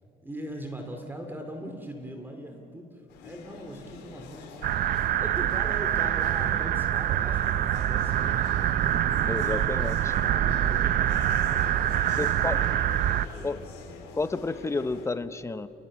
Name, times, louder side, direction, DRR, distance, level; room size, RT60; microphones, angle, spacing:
voice 1, 0.2-4.9 5.2-8.7 9.3-11.7 12.2-12.9 13.2-14.0, right 1 dB, 10° right, 4 dB, 2.5 m, -41 dB
sound 1, 3.1-15.1, left 5 dB, 80° left, 4.2 m, -44 dB
sound 2, 4.6-13.2, right 11 dB, 60° right, 0.7 m, -25 dB
voice 2, 9.3-10.0 12.2-12.6 13.4-13.6 14.2-15.7, left 3 dB, 15° left, 12 dB, 1.0 m, -30 dB
29.5 x 19.5 x 7.5 m, 2.7 s
cardioid pair, 110°, 17 cm